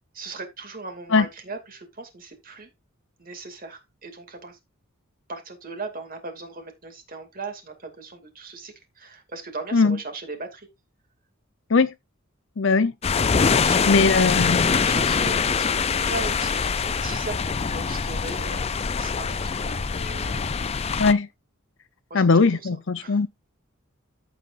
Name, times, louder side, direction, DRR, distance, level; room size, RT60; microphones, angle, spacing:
voice 1, 0.1-2.7 3.2-4.6 5.3-10.7 13.5-20.6 22.1-22.3 22.6-22.7 23.0-23.2, right 3 dB, 40° right, 2.5 m, -38 dB
voice 2, 12.6-12.9 13.9-14.6 21.0-21.3 22.1-23.3, left 4 dB, 60° left, 0.7 m, -19 dB
sound 1, 13.0-21.1, left 5 dB, 30° left, 0.4 m, -24 dB
15.0 x 5.4 x 2.6 m
head